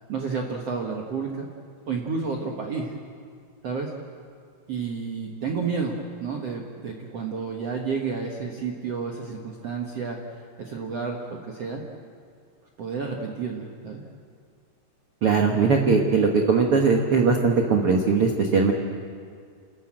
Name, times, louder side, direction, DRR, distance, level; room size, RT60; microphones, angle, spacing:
voice 1, 0.1-1.5 1.9-2.9 3.6-3.9 4.7-10.2 10.6-11.8 12.8-14.0, right 5 dB, 60° right, 0 dB, 1.6 m, -30 dB
voice 2, 15.2-18.7, right 4 dB, 80° right, 2 dB, 1.2 m, -20 dB
29.0 x 14.0 x 8.8 m, 2.1 s
omnidirectional pair, 4.8 m